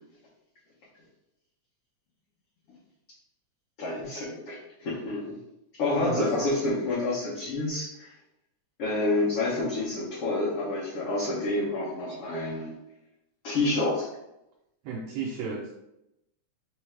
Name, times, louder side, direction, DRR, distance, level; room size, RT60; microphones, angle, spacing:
voice 1, 3.8-5.4 5.8-8.1 8.8-12.7 13.4-14.1, left 2 dB, 65° left, -7 dB, 1.6 m, -28 dB
voice 2, 14.8-15.7, right 5 dB, 80° right, 0 dB, 1.4 m, -33 dB
4.7 x 3.4 x 3.2 m, 0.87 s
omnidirectional pair, 3.4 m